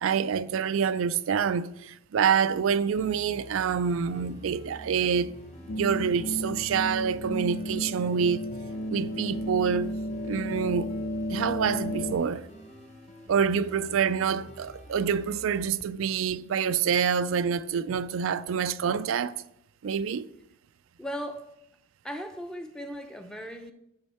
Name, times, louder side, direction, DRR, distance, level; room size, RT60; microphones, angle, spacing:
voice 1, 0.0-5.4 5.8-8.5 8.9-10.0 10.2-10.9 11.3-12.5 13.3-19.4 19.8-20.3, right 7 dB, 85° right, 0.4 m, -27 dB
sound 1, 2.9-15.7, equal, 35° left, 0.9 m, -48 dB
sound 2, 5.7-12.1, equal, 85° left, 0.7 m, -33 dB
voice 2, 21.0-21.5 22.0-23.7, equal, 5° left, 0.6 m, -37 dB
10.5 x 5.4 x 4.3 m
head